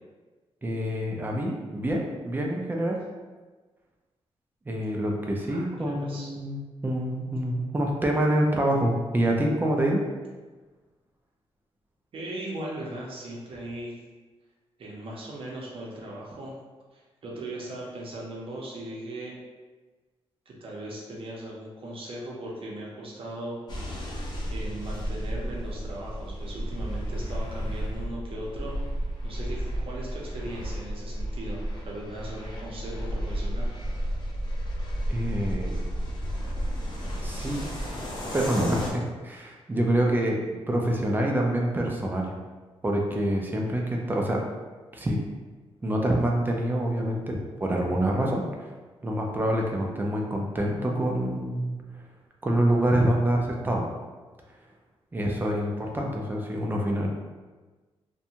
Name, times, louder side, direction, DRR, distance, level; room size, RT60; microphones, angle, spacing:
voice 1, 0.6-3.0 4.7-10.0 35.1-35.8 37.2-37.7 38.3-40.4 40.7-42.3 42.8-44.5 44.9-45.2 45.8-48.7 49.0-51.7 52.4-53.8 55.1-57.1, right 1 dB, 20° right, 0 dB, 0.4 m, -26 dB
voice 2, 5.5-6.3 12.1-13.9 14.8-16.5 16.9-19.4 20.5-23.6 24.5-28.8 29.2-33.7, right 1 dB, 55° right, -3 dB, 0.7 m, -38 dB
sound 1, 23.7-38.9, equal, 40° left, 0.6 m, -32 dB
2.5 x 2.2 x 2.8 m, 1.3 s
wide cardioid pair, 130°, 11 cm